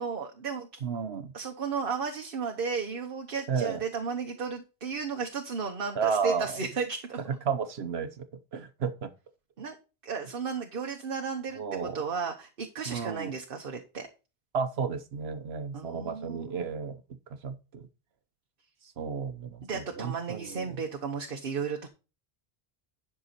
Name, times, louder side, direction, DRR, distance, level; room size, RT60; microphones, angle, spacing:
voice 1, 0.0-0.8 1.3-7.2 9.6-9.8 10.0-14.1 15.7-16.5 19.6-21.9, right 5 dB, 60° right, 4 dB, 1.3 m, -34 dB
voice 2, 0.8-1.3 3.5-3.8 6.0-6.5 7.5-8.3 8.5-9.1 11.6-12.0 12.9-13.3 14.5-17.0 17.4-17.9 19.0-20.8, right 6 dB, 80° right, 10 dB, 1.1 m, -32 dB
11.0 x 6.2 x 4.2 m, 0.32 s
omnidirectional pair, 1.0 m